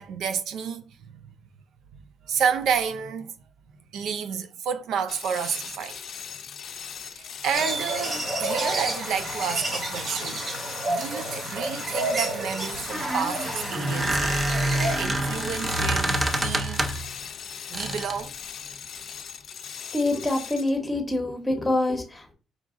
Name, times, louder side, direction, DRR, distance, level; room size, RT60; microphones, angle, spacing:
voice 1, 0.0-1.3 2.3-3.3 3.9-6.0 7.0-10.4 10.9-16.9 17.7-18.3, right 7 dB, 80° right, 0.4 m, -30 dB
sound 1, 5.1-20.8, left 7 dB, 65° left, 0.5 m, -39 dB
sound 2, 7.5-15.0, right 2 dB, 45° right, 1.4 m, -30 dB
Squeak, 12.7-17.1 17.7-18.2, right 1 dB, 20° right, 0.7 m, -27 dB
voice 2, 19.9-22.3, left 2 dB, 15° left, 1.1 m, -26 dB
4.9 x 2.4 x 3.6 m
cardioid pair, 90°, 0 cm